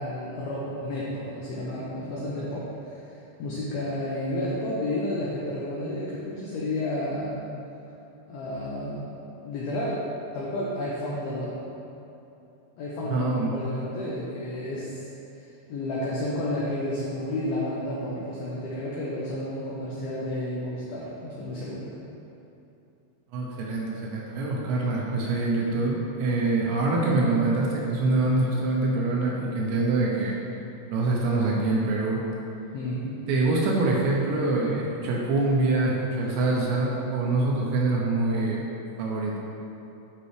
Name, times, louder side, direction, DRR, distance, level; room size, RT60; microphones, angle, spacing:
voice 1, 0.0-7.5 8.3-9.2 9.4-10.0 10.3-11.6 12.8-15.1 15.4-21.9 32.7-33.2, left 1 dB, 80° left, -7 dB, 2.2 m, -31 dB
voice 2, 13.1-13.6 23.3-30.4 30.9-32.2 33.3-38.6 39.0-39.4, right 2 dB, 80° right, -3 dB, 2.8 m, -25 dB
10.5 x 5.3 x 3.3 m, 2.8 s
omnidirectional pair, 5.5 m